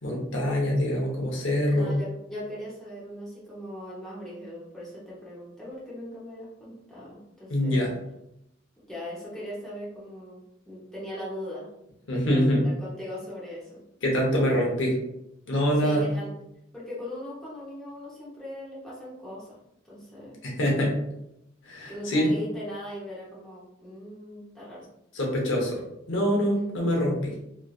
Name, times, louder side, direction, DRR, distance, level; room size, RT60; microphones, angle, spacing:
voice 1, 0.0-2.0 7.5-7.9 12.1-12.6 14.0-15.0 15.5-16.0 20.4-21.0 21.7-22.3 25.1-25.8 26.1-27.3, equal, 70° left, -2 dB, 0.8 m, -24 dB
voice 2, 1.6-7.9 8.9-11.7 12.1-13.8 15.8-16.3 16.7-19.6 19.8-20.4 21.9-24.9 26.3-26.7, left 1 dB, ahead, -9 dB, 0.8 m, -39 dB
3.1 x 2.5 x 2.4 m, 0.83 s
head